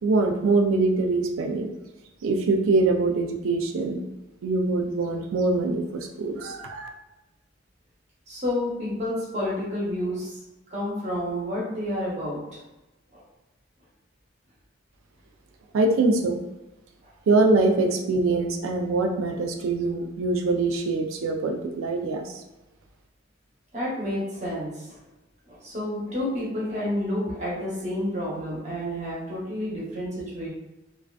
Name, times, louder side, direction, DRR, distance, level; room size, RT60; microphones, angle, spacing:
voice 1, 0.0-1.7 2.2-4.0 4.4-6.9 15.7-16.4 17.3-22.3, right 3 dB, 90° right, 3 dB, 0.4 m, -23 dB
voice 2, 8.3-10.4 10.7-12.6 13.1-13.2 23.7-25.0 25.5-30.5, left 1 dB, 35° right, -6 dB, 0.8 m, -30 dB
2.4 x 2.2 x 2.3 m, 1.0 s
head